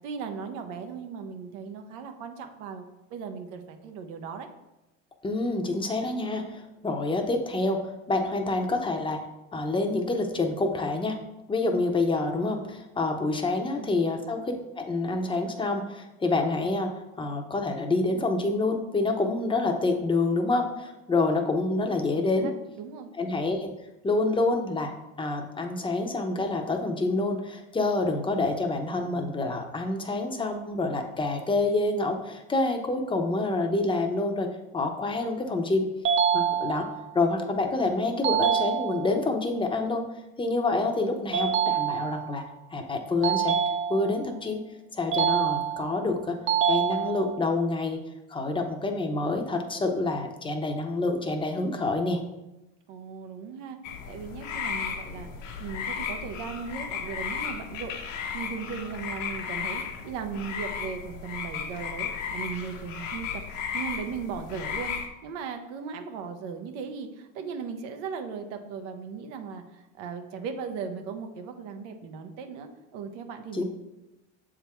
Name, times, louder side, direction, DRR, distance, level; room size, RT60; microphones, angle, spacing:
voice 1, 0.0-2.8 3.1-4.5 13.7-13.9 22.1-23.1 40.7-40.9 52.9-53.8 54.1-57.9 58.3-63.4 63.7-65.0 65.2-73.6, right 6 dB, 75° right, 6 dB, 0.9 m, -37 dB
voice 2, 5.2-9.2 9.5-11.2 11.5-16.9 17.2-22.5 23.2-23.7 24.0-24.9 25.2-34.5 34.7-35.8 36.3-36.9 37.1-40.0 40.4-42.4 42.7-43.6 43.9-44.6 44.9-46.4 46.7-48.0 48.3-52.2 73.5-73.6, left 2 dB, 15° left, 4 dB, 0.8 m, -27 dB
sound 1, 36.0-37.1 38.2-39.2 41.3-42.3 43.2-44.3 45.1-46.0 46.5-47.5, right 8 dB, 35° right, 0.6 m, -26 dB
sound 2, 53.8-65.1, left 6 dB, 85° left, 1.0 m, -35 dB
7.0 x 3.8 x 4.4 m, 0.97 s
supercardioid pair, 115°, 37 cm